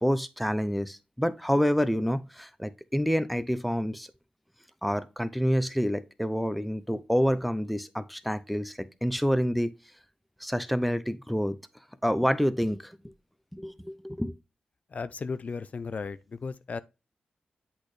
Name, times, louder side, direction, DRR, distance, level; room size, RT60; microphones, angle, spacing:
voice 1, 0.0-4.1 4.8-9.7 10.4-11.6 12.0-13.0 13.5-14.3, equal, ahead, 0.5 m, -28 dB
voice 2, 14.9-16.8, left 4 dB, 55° left, 0.4 m, -35 dB
8.0 x 4.3 x 3.1 m
cardioid pair, 75°, 3 cm